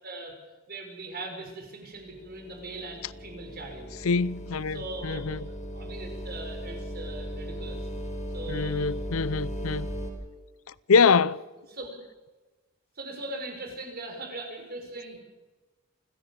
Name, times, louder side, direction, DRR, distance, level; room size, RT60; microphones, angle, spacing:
voice 1, 0.0-0.3 0.7-3.9 4.7-7.8 8.3-9.0 11.0-11.2 11.6-11.9 13.0-15.2, right 2 dB, 45° right, 5.7 m, -40 dB
sound 1, 2.0-10.1, equal, 35° left, 4.9 m, -37 dB
voice 2, 4.0-5.4 8.5-9.9 10.9-11.4, left 5 dB, 75° left, 0.6 m, -24 dB
28.5 x 16.0 x 7.3 m
head